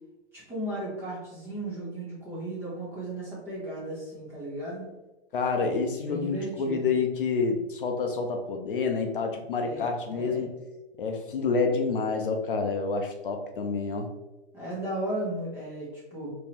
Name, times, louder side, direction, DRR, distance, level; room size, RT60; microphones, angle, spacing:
voice 1, 0.3-4.9 6.0-6.9 9.6-10.4 14.5-16.3, right 1 dB, 5° right, -8 dB, 0.7 m, -35 dB
voice 2, 5.3-10.5 11.0-14.1, left 4 dB, 50° left, 3 dB, 0.6 m, -28 dB
3.6 x 3.0 x 2.8 m, 1.0 s
hypercardioid pair, 160°, 34 cm